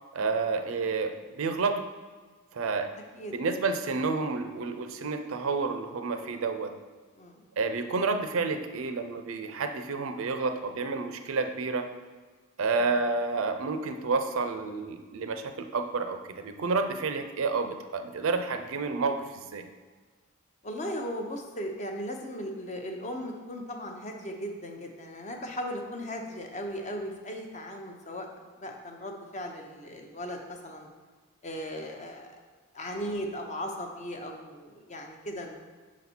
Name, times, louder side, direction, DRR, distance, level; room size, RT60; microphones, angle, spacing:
voice 1, 0.1-1.8 2.5-2.9 3.3-6.7 7.6-11.9 12.6-19.7, right 4 dB, 65° right, 7 dB, 0.5 m, -30 dB
voice 2, 20.6-28.3 28.6-30.9 31.4-32.4 32.7-35.6, equal, 35° left, 3 dB, 0.7 m, -37 dB
6.1 x 4.1 x 4.3 m, 1.4 s
head